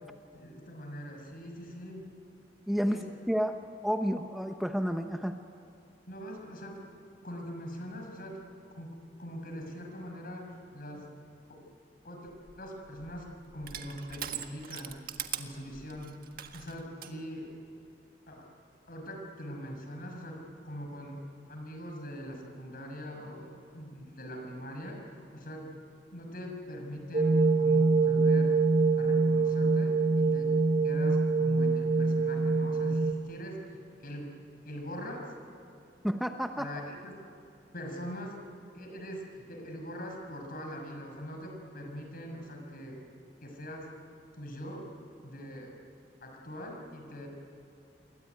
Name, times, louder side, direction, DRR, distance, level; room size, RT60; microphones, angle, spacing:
voice 1, 0.3-2.1 2.9-3.0 6.1-6.8 7.2-8.4 8.8-11.1 11.5-11.6 12.0-12.3 12.6-14.9 15.4-16.2 16.5-17.5 18.3-18.5 18.9-21.2 21.5-25.7 26.1-28.6 29.0-30.5 30.8-34.3 34.6-35.3 36.6-37.1 37.7-38.4 38.7-43.0 43.4-43.9 44.4-44.9 45.2-45.7 46.2-47.3, equal, 55° left, 3 dB, 6.2 m, -42 dB
voice 2, 2.7-3.6 3.8-5.4 36.0-36.7, equal, ahead, 5 dB, 0.8 m, -30 dB
Crushing, 12.3-17.2, right 9 dB, 55° right, 1.7 m, -42 dB
sound 1, 27.1-33.1, right 3 dB, 40° right, 1.0 m, -25 dB
28.0 x 22.5 x 9.4 m, 2.7 s
head